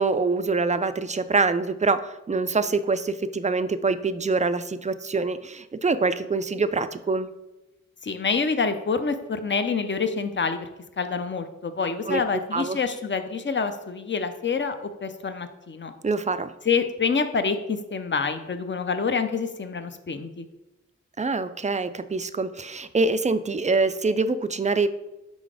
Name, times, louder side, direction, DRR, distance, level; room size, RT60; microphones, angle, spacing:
voice 1, 0.0-7.3 12.1-12.2 12.5-12.8 16.0-16.5 21.2-24.9, right 3 dB, 25° right, 12 dB, 0.3 m, -25 dB
voice 2, 8.0-10.7 11.0-15.9 16.6-20.5, left 5 dB, 40° left, 9 dB, 0.6 m, -27 dB
5.0 x 3.9 x 4.8 m, 0.97 s
wide cardioid pair, 60°, 29 cm